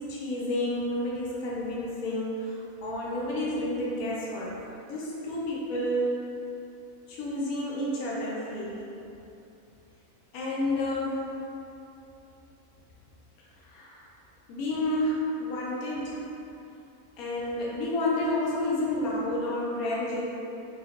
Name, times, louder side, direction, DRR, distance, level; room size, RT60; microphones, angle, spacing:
voice 1, 0.1-6.2 7.1-8.9 10.3-11.2 13.6-14.0 14.5-16.2 17.2-20.2, left 1 dB, 80° left, -6 dB, 1.1 m, -30 dB
3.5 x 2.2 x 2.8 m, 2.9 s
omnidirectional pair, 1.5 m